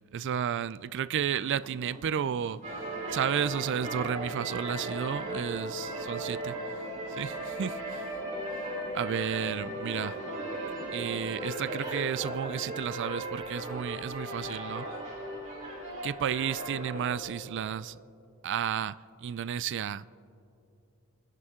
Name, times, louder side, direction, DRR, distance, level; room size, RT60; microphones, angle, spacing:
voice 1, 0.1-2.6 3.1-6.5 7.1-8.0 8.9-10.2 10.9-14.9 16.0-18.0 18.4-20.1, right 8 dB, 55° right, 0.3 m, -32 dB
sound 1, 1.2-11.2, left 1 dB, 20° left, 3.4 m, -50 dB
sound 2, 2.6-17.1, right 1 dB, 35° right, 3.9 m, -37 dB
27.5 x 10.5 x 3.7 m
head